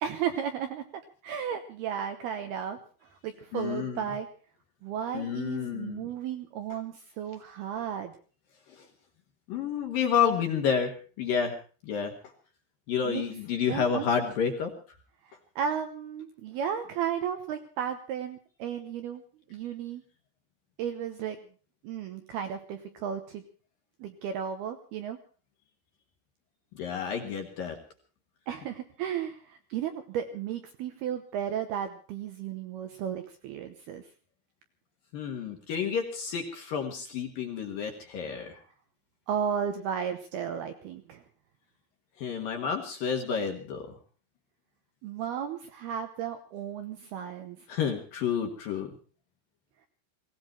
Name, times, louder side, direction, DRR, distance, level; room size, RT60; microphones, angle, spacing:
voice 1, 0.0-4.3 4.8-8.2 13.0-13.2 13.7-14.1 15.6-19.2 19.5-20.0 20.8-21.4 21.8-23.4 24.0-25.2 28.5-34.0 39.3-41.2 45.0-47.7, right 8 dB, 75° right, 7 dB, 2.4 m, -34 dB
voice 2, 3.5-4.1 5.1-6.1 8.7-8.9 9.5-11.5 11.8-12.1 12.9-14.7 26.7-27.8 35.1-38.6 42.2-43.9 47.7-48.9, left 7 dB, 60° left, 4 dB, 2.5 m, -30 dB
18.5 x 17.5 x 4.3 m, 0.39 s
omnidirectional pair, 5.8 m